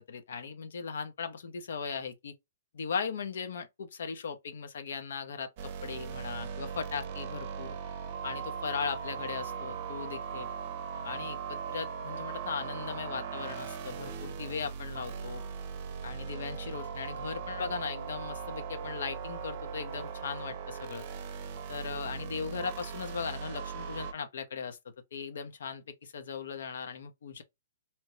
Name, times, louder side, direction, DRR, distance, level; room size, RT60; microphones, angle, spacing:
voice 1, 0.0-2.4 2.7-7.8 8.2-10.5 11.0-15.4 16.0-21.1 21.7-24.8 25.1-27.4, left 6 dB, 70° left, 0.7 m, -38 dB
sound 1, 5.6-24.1, right 6 dB, 45° right, 0.6 m, -39 dB
2.9 x 2.2 x 3.0 m
hypercardioid pair, 125°, 0 cm